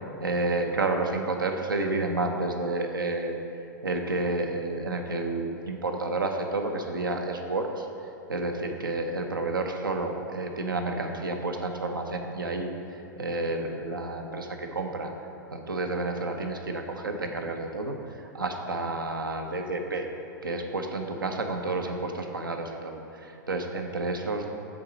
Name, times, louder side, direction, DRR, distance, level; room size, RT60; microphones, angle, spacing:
voice 1, 0.2-3.4 3.8-7.9 8.3-12.7 13.2-15.1 15.5-20.1 20.4-24.5, right 2 dB, 85° right, 4 dB, 0.7 m, -30 dB
6.1 x 4.0 x 6.3 m, 2.7 s
hypercardioid pair, 105°, 11 cm